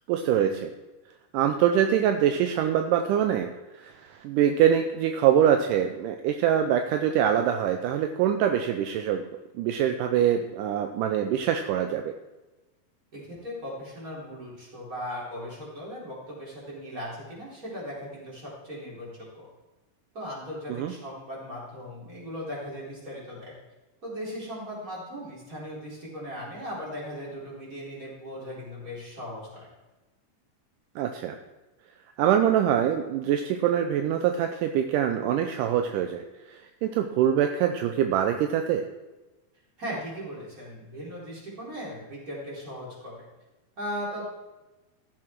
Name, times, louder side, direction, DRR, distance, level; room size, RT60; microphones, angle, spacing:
voice 1, 0.1-0.7 1.3-3.5 3.8-9.3 9.6-12.1 20.7-20.9 31.0-31.4 32.2-38.9, right 9 dB, 80° right, 6 dB, 2.1 m, -24 dB
voice 2, 13.1-19.5 20.1-23.5 24.0-29.7 39.8-43.1 43.8-44.3, equal, 25° right, -6 dB, 4.3 m, -38 dB
14.5 x 7.5 x 4.6 m, 1.1 s
omnidirectional pair, 3.9 m